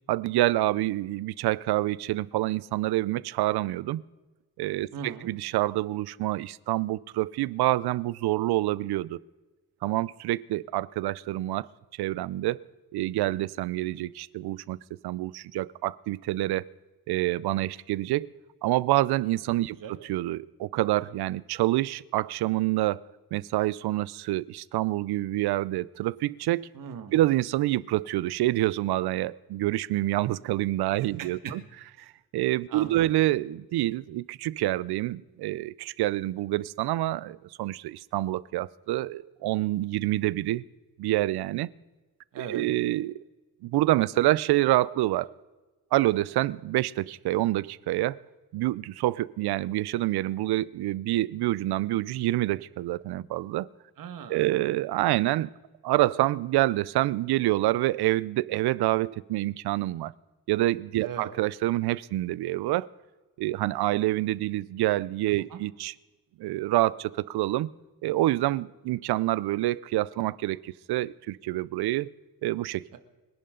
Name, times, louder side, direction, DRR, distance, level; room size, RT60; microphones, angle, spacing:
voice 1, 0.1-4.0 4.6-9.2 9.8-11.7 12.0-12.6 12.9-14.8 15.0-16.7 17.1-18.3 18.6-19.8 20.0-23.0 23.3-26.7 27.1-31.6 32.3-40.6 41.0-41.7 42.4-43.2 43.6-45.3 45.9-48.2 48.5-53.7 54.3-55.5 55.8-60.1 60.5-62.9 63.4-65.9 66.4-67.7 68.0-72.1 72.4-72.9, right 16 dB, 85° right, 0.6 m, -27 dB
voice 2, 4.9-5.3 19.8-19.9 26.7-27.2 30.9-31.5 32.0-32.1 32.7-33.1 42.3-42.6 54.0-54.5 61.0-61.3 65.5-65.6 72.9-73.0, right 7 dB, 55° right, 1.8 m, -39 dB
25.5 x 11.0 x 3.8 m
cardioid pair, 170°, 38 cm